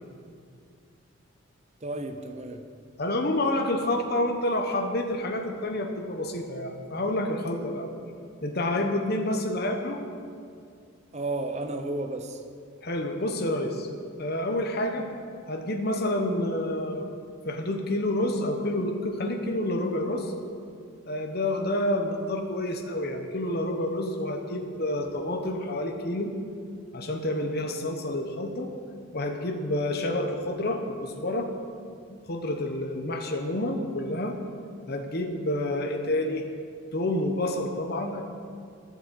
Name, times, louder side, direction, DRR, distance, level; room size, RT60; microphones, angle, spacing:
voice 1, 1.8-2.6 11.1-12.4, right 2 dB, 30° right, 7 dB, 0.7 m, -32 dB
voice 2, 3.0-7.9 8.4-10.0 12.8-13.9 14.2-15.1 15.5-17.1 17.4-20.3 21.1-26.3 26.9-28.7 29.1-31.5 32.1-34.4 34.9-36.4 36.9-38.3, left 1 dB, 50° left, 4 dB, 1.0 m, -28 dB
11.0 x 7.9 x 8.2 m, 2.3 s
head